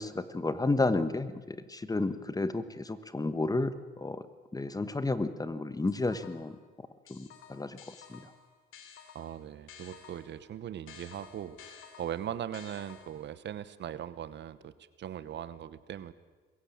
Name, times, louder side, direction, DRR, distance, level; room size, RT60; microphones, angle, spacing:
voice 1, 0.0-4.2 4.5-6.5 7.1-7.8 8.1-8.2, left 2 dB, 20° left, 12 dB, 1.3 m, -31 dB
sound 1, 5.9-6.6 7.1-10.4 10.9-13.3, left 7 dB, 90° left, 2.9 m, -53 dB
voice 2, 9.1-16.1, right 10 dB, 65° right, 15 dB, 1.1 m, -40 dB
23.0 x 15.5 x 8.7 m, 1.3 s
cardioid pair, 90°, 20 cm